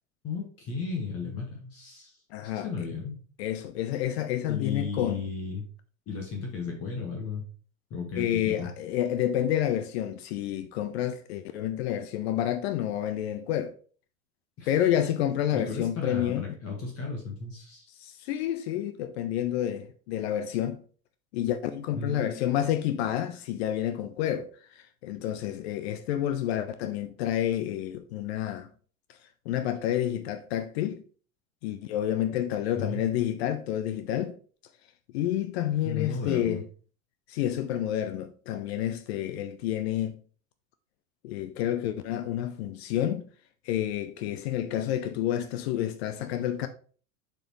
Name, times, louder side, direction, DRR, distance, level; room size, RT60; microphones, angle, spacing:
voice 1, 0.2-2.1 2.4-3.2 4.5-5.6 6.1-7.4 7.9-8.7 14.6-14.7 15.5-17.9 21.9-22.5 32.8-33.0 35.8-36.6, left 4 dB, 35° left, 1.6 m, -35 dB
voice 2, 2.3-2.9 3.4-5.3 8.2-13.7 14.7-16.4 18.0-20.8 21.3-28.7 29.1-29.2 29.5-31.0 31.6-34.4 35.1-36.6 37.3-40.2 41.2-43.3 43.6-46.7, left 11 dB, 50° left, 0.6 m, -29 dB
7.4 x 4.5 x 3.1 m
figure-of-eight pair, 80°, 41 cm